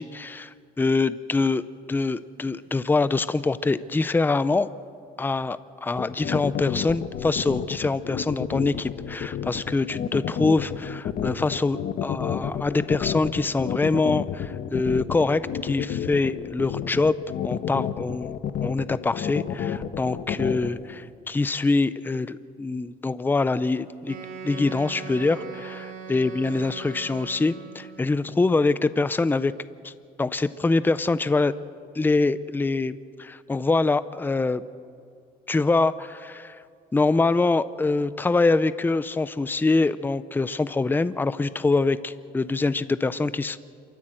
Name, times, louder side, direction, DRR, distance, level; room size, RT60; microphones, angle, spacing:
voice 1, 0.0-1.6 1.9-4.7 5.2-17.2 17.4-18.3 18.6-24.2 24.4-29.5 29.8-29.9 30.2-31.5 31.9-34.6 35.5-36.6 36.9-43.6, left 3 dB, 10° left, 15 dB, 0.6 m, -24 dB
sound 1, 6.0-20.7, left 9 dB, 55° left, 1.2 m, -30 dB
Wind instrument woodwind instrument, 24.0-28.1, right 5 dB, 60° right, 4.1 m, -39 dB
28.0 x 14.0 x 7.8 m, 2.3 s
cardioid pair, 110°, 17 cm